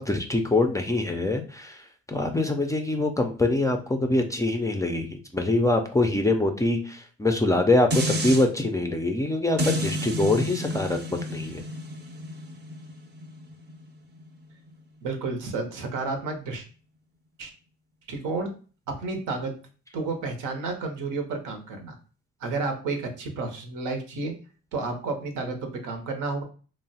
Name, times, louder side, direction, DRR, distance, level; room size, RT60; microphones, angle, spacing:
voice 1, 0.0-1.8 2.1-11.6, left 2 dB, 10° left, 4 dB, 0.3 m, -24 dB
sound 1, 7.9-8.5 9.6-14.7 15.2-15.3, equal, 35° right, 0.6 m, -31 dB
voice 2, 15.0-16.7 17.4-17.5 18.1-18.5 18.9-19.5 19.9-22.0 22.4-24.3 24.7-26.4, right 3 dB, 80° right, 5 dB, 0.7 m, -31 dB
2.9 x 2.0 x 2.7 m, 0.37 s
cardioid pair, 90°, 30 cm